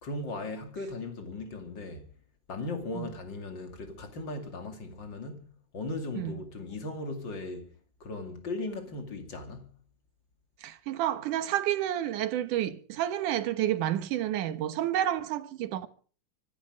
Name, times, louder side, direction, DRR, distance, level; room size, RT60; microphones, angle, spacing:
voice 1, 0.0-2.1 2.5-5.5 5.7-7.7 8.0-9.7, left 2 dB, 35° left, 2.8 m, -37 dB
voice 2, 10.6-15.9, right 12 dB, 75° right, 2.6 m, -30 dB
25.0 x 11.0 x 5.1 m
omnidirectional pair, 3.8 m